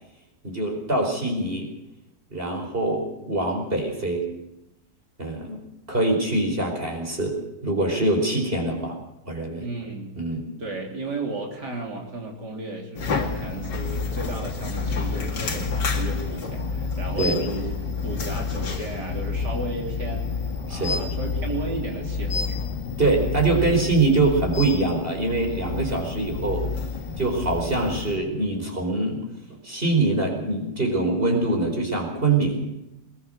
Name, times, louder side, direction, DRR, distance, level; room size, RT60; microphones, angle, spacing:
voice 1, 0.4-1.7 2.3-4.3 5.2-5.6 5.9-7.4 7.6-9.0 9.3-9.6 10.2-10.4 17.2-17.4 20.7-21.0 23.0-26.7 27.2-29.2 29.6-32.8, right 2 dB, 30° right, 2 dB, 4.8 m, -24 dB
voice 2, 9.6-10.2 10.6-20.3 20.7-22.7, right 2 dB, 70° right, 1 dB, 3.9 m, -34 dB
sound 1, 13.0-28.2, left 4 dB, 80° left, 2.8 m, -29 dB
21.0 x 19.5 x 6.5 m, 0.88 s
omnidirectional pair, 1.9 m